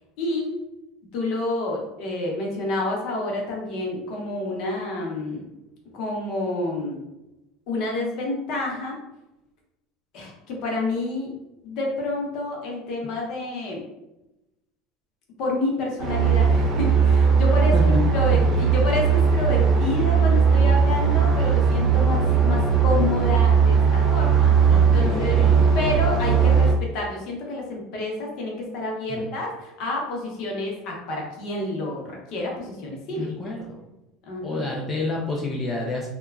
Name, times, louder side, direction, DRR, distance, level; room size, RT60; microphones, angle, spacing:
voice 1, 0.2-0.6 1.1-5.5 5.9-7.0 7.7-9.0 10.1-11.3 11.6-13.8 15.4-25.4 25.7-33.3 34.3-34.7, left 2 dB, 50° left, -1 dB, 0.7 m, -29 dB
sound 1, 16.0-26.7, right 6 dB, 30° right, 0.5 m, -18 dB
voice 2, 24.7-25.6 29.1-29.3 33.2-33.8 34.4-36.1, left 2 dB, 15° left, -3 dB, 0.3 m, -29 dB
2.8 x 2.2 x 2.3 m, 0.95 s
cardioid pair, 160°, 0 cm